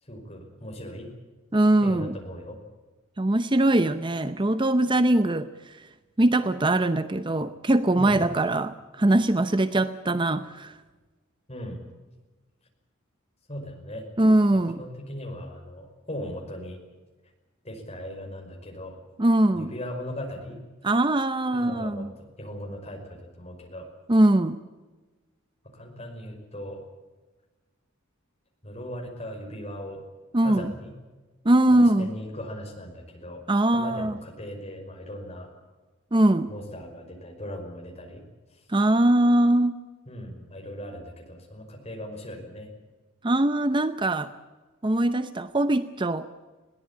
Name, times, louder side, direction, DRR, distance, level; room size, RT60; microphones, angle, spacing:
voice 1, 0.0-1.1 1.8-2.6 8.0-8.3 11.5-11.8 13.5-14.1 14.5-16.8 17.6-19.0 19.5-20.6 21.5-23.9 25.6-26.8 28.6-30.0 30.4-30.9 31.7-33.4 33.7-35.5 36.5-38.7 40.1-42.7, equal, 30° left, 2 dB, 5.5 m, -38 dB
voice 2, 1.5-2.1 3.2-5.5 6.2-10.7 14.2-14.8 19.2-19.7 20.8-22.1 24.1-24.6 30.3-30.7 31.4-32.1 33.5-34.1 36.1-36.5 38.7-39.8 43.2-44.3 44.8-46.3, right 1 dB, 25° right, 12 dB, 0.7 m, -22 dB
21.5 x 18.0 x 8.8 m, 1.2 s
head